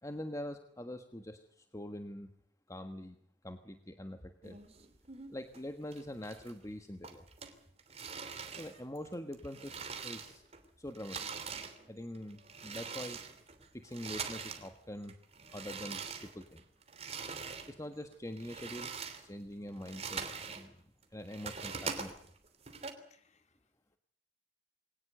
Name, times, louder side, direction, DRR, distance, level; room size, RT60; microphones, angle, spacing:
voice 1, 0.0-2.3 2.7-3.2 3.4-4.6 5.3-7.2 8.6-10.4 10.8-11.3 11.9-13.2 13.7-15.1 15.5-16.6 17.7-20.8 21.1-22.1, left 1 dB, 15° left, 7 dB, 1.4 m, -44 dB
sound 1, 4.4-5.6 5.9-6.7 7.0-10.6 10.9-14.7 15.0-17.7 18.1-20.7 21.0-22.9, right 5 dB, 35° right, 3.0 m, -43 dB
voice 2, 22.9-24.0, left 6 dB, 40° left, 8 dB, 2.6 m, -72 dB
22.0 x 19.0 x 8.0 m, 0.64 s
head